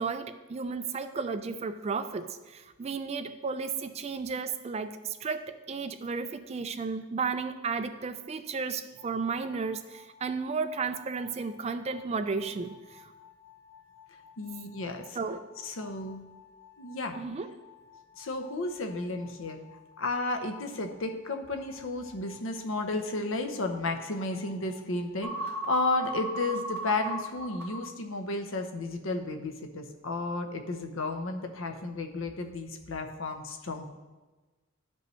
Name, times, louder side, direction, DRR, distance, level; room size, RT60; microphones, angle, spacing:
voice 1, 0.0-13.1 15.1-15.5 17.2-17.5, right 5 dB, 30° right, 10 dB, 0.3 m, -33 dB
sound 1, 9.0-25.8, left 8 dB, 10° left, 1.4 m, -56 dB
voice 2, 14.4-15.2 15.6-16.2 16.8-17.2 18.2-19.6 20.0-33.8, left 2 dB, 70° left, 5 dB, 0.7 m, -33 dB
sound 2, 25.2-27.8, right 1 dB, 15° right, 2.3 m, -35 dB
12.5 x 5.3 x 3.1 m, 1.2 s
head